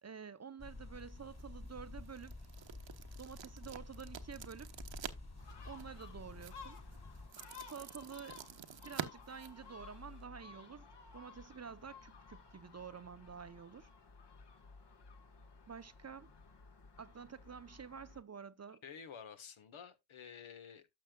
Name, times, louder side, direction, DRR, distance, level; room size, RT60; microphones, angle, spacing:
voice 1, 0.0-2.3 3.2-4.7 5.6-6.8 7.7-8.4 8.8-10.9 11.1-13.9 15.7-16.3 17.0-18.8, right 6 dB, 30° right, 0.7 m, -49 dB
sound 1, 0.6-7.3, left 2 dB, 30° left, 2.5 m, -51 dB
sound 2, 1.2-10.3, right 9 dB, 60° right, 1.1 m, -50 dB
Gull seagull, 5.4-18.2, left 5 dB, 55° left, 1.7 m, -56 dB
voice 2, 18.8-20.9, left 7 dB, 70° left, 1.4 m, -51 dB
12.5 x 6.2 x 2.3 m
supercardioid pair, 40°, 50 cm